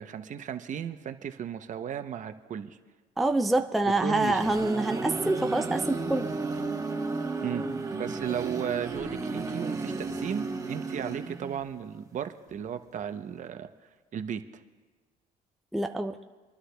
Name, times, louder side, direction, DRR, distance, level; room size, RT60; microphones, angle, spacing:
voice 1, 0.0-2.8 4.0-4.6 7.4-13.7 14.1-14.4, right 8 dB, 45° right, 9 dB, 0.7 m, -35 dB
voice 2, 3.2-6.3 15.7-16.2, right 2 dB, ahead, 7 dB, 0.4 m, -26 dB
sound 1, 4.0-11.7, right 3 dB, 20° right, 1.2 m, -33 dB
27.0 x 11.0 x 2.3 m, 1.4 s
cardioid pair, 110°, 17 cm